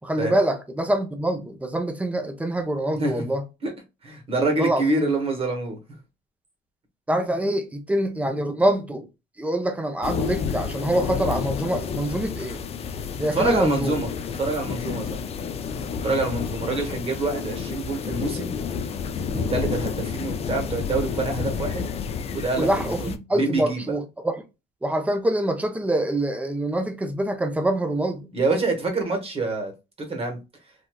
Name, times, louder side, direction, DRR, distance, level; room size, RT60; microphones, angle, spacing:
voice 1, 0.0-3.4 4.5-5.1 7.1-9.1 9.4-12.6 13.2-14.0 22.6-24.4 24.8-28.3, right 1 dB, 10° right, 0.6 m, -25 dB
voice 2, 4.0-5.8 13.3-15.2 16.0-18.5 19.3-21.9 22.3-23.9 28.3-29.7 30.1-30.4, right 2 dB, 35° right, 1.2 m, -26 dB
sound 1, 10.0-23.2, left 6 dB, 40° left, 0.4 m, -30 dB
3.4 x 2.6 x 2.2 m
cardioid pair, 110°, 17 cm